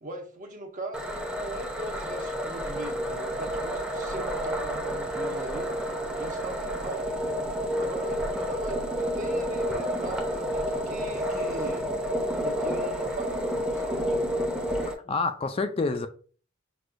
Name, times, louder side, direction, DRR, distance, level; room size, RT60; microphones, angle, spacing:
voice 1, 0.0-7.3 7.8-11.9 12.4-14.3, right 1 dB, 40° right, 0.9 m, -39 dB
sound 1, 0.9-14.9, equal, 5° right, 0.7 m, -30 dB
sound 2, 3.0-13.5, right 8 dB, 70° right, 0.4 m, -40 dB
voice 2, 15.1-16.1, left 3 dB, 30° left, 0.3 m, -28 dB
6.0 x 2.3 x 2.5 m
head